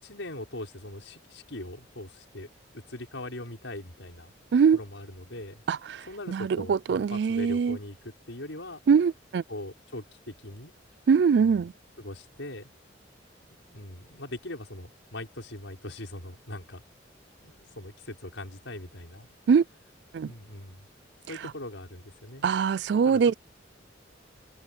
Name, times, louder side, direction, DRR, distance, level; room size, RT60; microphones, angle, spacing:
voice 1, 0.0-4.3 4.7-5.6 6.1-8.8 9.5-10.7 11.4-11.7 12.0-12.7 13.7-16.8 17.4-19.3 20.2-20.9 21.3-22.5 23.0-23.2, left 1 dB, 85° left, 6.1 m, -41 dB
voice 2, 5.7-6.1 6.3-7.8 8.9-9.4 11.1-11.7 19.5-19.6 20.1-20.3 22.4-23.3, right 6 dB, 65° right, 0.3 m, -22 dB
head